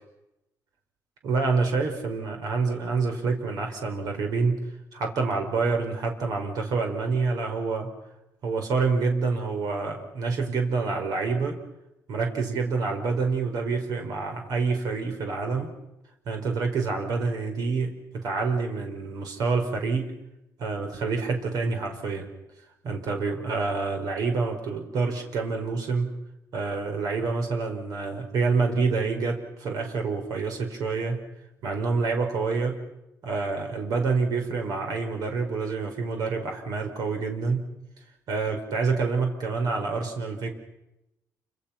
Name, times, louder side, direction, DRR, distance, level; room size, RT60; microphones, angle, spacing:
voice 1, 1.2-4.6 4.9-7.9 8.4-11.6 12.1-15.7 16.2-20.1 20.6-22.3 22.8-26.1 26.5-31.2 31.6-32.8 33.2-37.7 38.3-40.5, right 4 dB, 70° right, 3 dB, 5.0 m, -27 dB
29.0 x 26.5 x 6.0 m, 0.91 s
cardioid pair, 135°, 7 cm